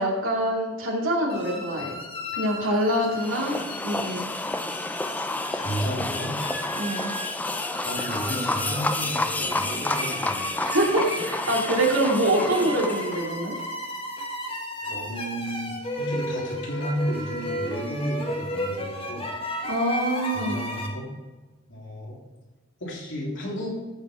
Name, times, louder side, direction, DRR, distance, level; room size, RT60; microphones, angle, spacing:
voice 1, 0.0-2.0 2.3-4.2 6.7-7.1 10.6-13.5 19.6-20.6, right 1 dB, 85° right, -2 dB, 2.5 m, -25 dB
sound 1, 1.3-20.9, left 1 dB, 30° left, 1.4 m, -35 dB
sound 2, 3.2-13.3, left 2 dB, 10° left, 0.4 m, -30 dB
voice 2, 5.3-6.4 7.5-10.5 11.8-11.9 14.8-19.3 20.2-21.1 21.7-22.2 22.8-23.7, equal, 65° left, -4 dB, 3.2 m, -33 dB
13.5 x 4.9 x 4.4 m, 1.3 s
head